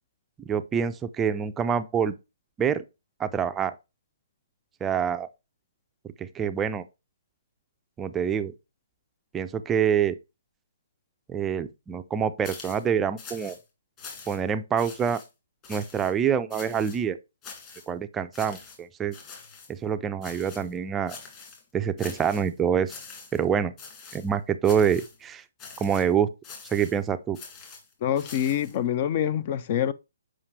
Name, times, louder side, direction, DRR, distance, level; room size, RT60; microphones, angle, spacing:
voice 1, 0.5-2.1 2.6-2.8 3.2-3.7 4.8-5.3 6.2-6.8 8.0-8.5 9.3-10.1 11.3-13.6 14.3-15.2 15.7-17.2 17.9-19.1 19.7-21.2 21.7-22.9 23.3-23.7 24.1-25.4 25.8-26.3 26.7-27.4, right 7 dB, 15° right, 0.4 m, -26 dB
sound 1, 12.4-12.9 13.2-13.6 14.0-14.5 14.8-15.3 15.6-16.1 16.5-17.0 17.4-17.9 18.3-18.8 19.1-19.7 20.2-20.7 21.1-21.6 22.0-22.5 22.9-23.4 23.8-24.3 24.6-25.2 25.6-26.1 26.4-27.0 27.3-28.8, left 5 dB, 25° left, 2.2 m, -44 dB
voice 2, 28.0-29.9, left 10 dB, 40° left, 0.5 m, -26 dB
7.2 x 5.0 x 3.3 m
hypercardioid pair, 145°, 0 cm